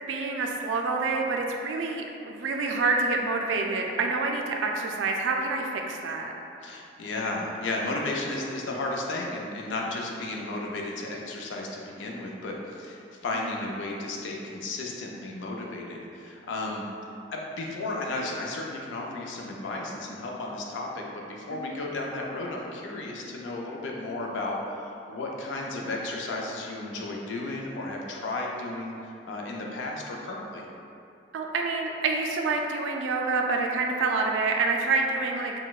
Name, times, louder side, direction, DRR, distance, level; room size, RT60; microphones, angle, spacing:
voice 1, 0.1-6.3 13.3-13.5 21.5-21.8 31.3-35.5, right 3 dB, 85° right, 2 dB, 0.3 m, -27 dB
voice 2, 6.6-16.8 17.3-28.9 29.2-30.6, left 2 dB, 85° left, -1 dB, 0.4 m, -34 dB
4.0 x 2.1 x 2.3 m, 2.6 s
head